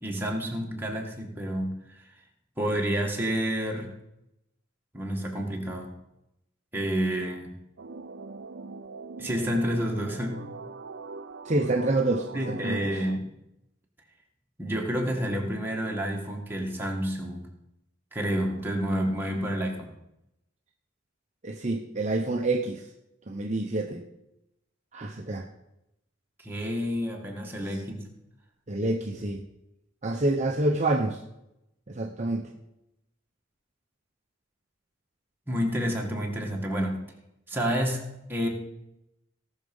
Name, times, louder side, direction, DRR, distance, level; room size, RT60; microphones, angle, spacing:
voice 1, 0.0-2.0 2.6-3.9 4.9-5.9 6.7-7.5 9.2-10.4 12.3-13.2 14.6-17.5 18.1-19.9 26.4-28.0 35.5-37.0 37.5-38.0 38.3-38.5, equal, 10° right, -1 dB, 2.1 m, -29 dB
sound 1, 7.8-13.2, right 3 dB, 70° right, 0.5 m, -41 dB
voice 2, 11.4-13.0 21.4-22.9 23.3-24.0 24.9-25.5 28.7-29.4 30.0-31.2 31.9-32.5, right 2 dB, 35° right, 2 dB, 0.8 m, -27 dB
17.5 x 6.4 x 5.5 m, 0.87 s
head